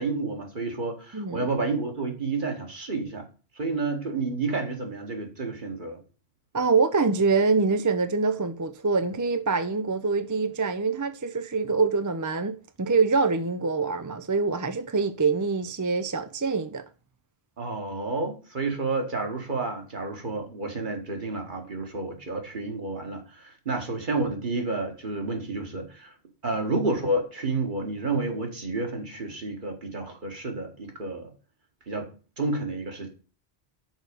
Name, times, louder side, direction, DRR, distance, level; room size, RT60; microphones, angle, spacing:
voice 1, 0.0-3.3 3.6-6.0 17.6-26.1 26.4-31.3 31.9-32.1 32.4-33.1, right 3 dB, 50° right, 1.8 m, -30 dB
voice 2, 1.1-1.5 6.5-16.8, right 4 dB, 25° right, 0.4 m, -25 dB
6.4 x 4.8 x 6.5 m
omnidirectional pair, 1.1 m